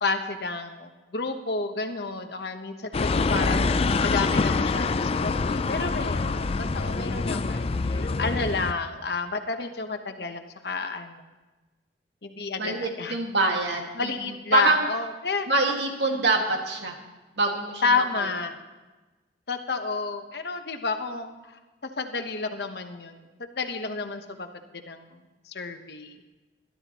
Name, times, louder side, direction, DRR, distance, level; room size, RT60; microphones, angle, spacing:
voice 1, 0.0-3.7 4.0-11.2 12.2-13.2 13.9-15.5 17.8-18.5 19.5-21.3 22.0-24.5 24.7-25.2 25.5-26.2, left 4 dB, 65° left, 6 dB, 1.1 m, -30 dB
sound 1, 2.9-8.7, left 3 dB, 35° left, 0.4 m, -25 dB
voice 2, 12.6-14.1 14.5-14.9 15.5-17.0 17.4-18.3, right 2 dB, 80° right, 2 dB, 2.0 m, -25 dB
21.0 x 12.0 x 3.0 m, 1.2 s
head